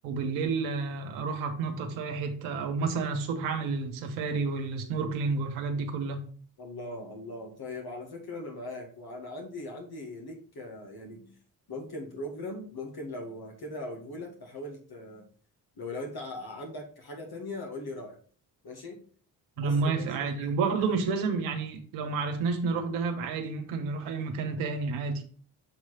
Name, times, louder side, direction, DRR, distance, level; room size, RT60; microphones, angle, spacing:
voice 1, 0.0-6.2 19.6-25.2, right 4 dB, 85° right, 1.1 m, -30 dB
voice 2, 6.6-11.4 11.7-15.3 15.8-18.2 18.6-19.0 19.6-20.1 20.4-21.0, left 2 dB, 50° left, 2.0 m, -40 dB
7.2 x 3.1 x 5.7 m
hypercardioid pair, 40°, 47 cm